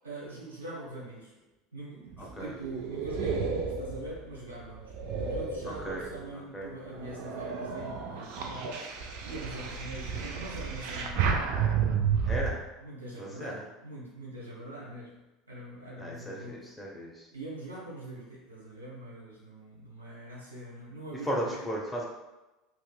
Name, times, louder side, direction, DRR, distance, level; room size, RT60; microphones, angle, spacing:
voice 1, 0.0-1.3 1.7-8.9 9.2-12.0 12.8-15.2 15.5-16.7 17.3-21.6, right 2 dB, 90° right, -7 dB, 1.0 m, -43 dB
sound 1, 2.1-6.3 6.8-12.5, right 6 dB, 60° right, 0.4 m, -32 dB
voice 2, 2.2-2.5 5.7-6.0 6.3-6.7 12.2-12.6 13.2-13.6 16.0-17.3 21.2-22.1, equal, 5° left, -3 dB, 0.8 m, -36 dB
2.9 x 2.8 x 2.3 m, 1.0 s
hypercardioid pair, 75°, 0 cm